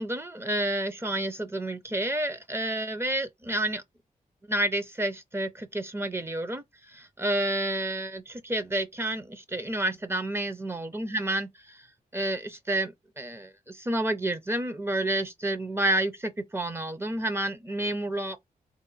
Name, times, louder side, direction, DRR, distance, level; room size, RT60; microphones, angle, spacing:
voice 1, 0.0-3.8 4.5-11.9 12.1-18.4, right 1 dB, 15° right, 0.5 m, -30 dB
4.1 x 2.2 x 3.8 m
wide cardioid pair, 115°, 15 cm